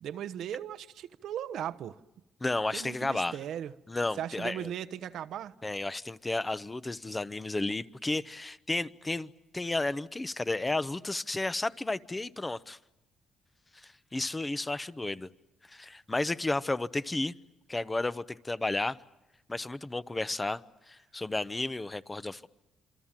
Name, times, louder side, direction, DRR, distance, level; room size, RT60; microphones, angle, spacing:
voice 1, 0.0-2.0 2.7-3.7 4.2-5.5, right 10 dB, 75° right, 1.0 m, -37 dB
voice 2, 2.4-3.4 3.9-4.7 5.6-12.8 13.7-15.3 15.7-17.3 17.7-19.0 19.5-20.6 20.9-22.5, left 2 dB, 20° left, 0.9 m, -32 dB
27.5 x 24.5 x 7.5 m
cardioid pair, 90°, 0 cm